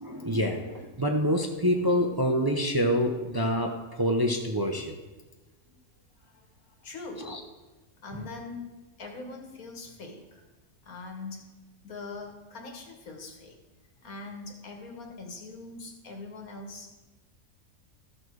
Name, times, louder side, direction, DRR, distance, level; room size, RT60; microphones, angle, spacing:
voice 1, 0.0-4.9 7.2-7.4, equal, 25° right, 2 dB, 0.6 m, -26 dB
voice 2, 6.2-7.3 8.0-8.7 9.0-10.4 10.8-11.5 11.8-13.6 14.0-16.9, left 3 dB, 90° left, 2 dB, 2.0 m, -42 dB
13.5 x 6.3 x 4.7 m, 1.2 s
omnidirectional pair, 1.5 m